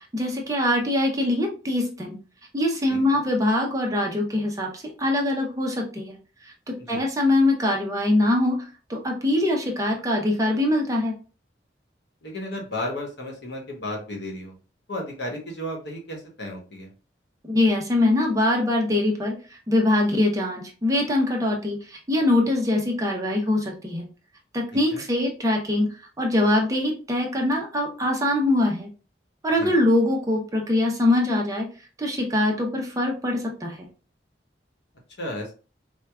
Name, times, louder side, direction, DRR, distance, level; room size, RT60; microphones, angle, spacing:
voice 1, 0.1-2.1 2.5-6.2 6.4-8.6 8.9-11.1 17.4-24.1 24.5-25.9 26.2-28.9 29.4-31.7 32.0-33.9, left 1 dB, 20° right, 0 dB, 0.6 m, -23 dB
voice 2, 12.2-14.5 14.9-16.9 24.9-25.0 29.6-29.7 35.2-35.5, left 1 dB, 70° left, 0 dB, 1.1 m, -33 dB
4.5 x 2.2 x 2.3 m, 0.35 s
head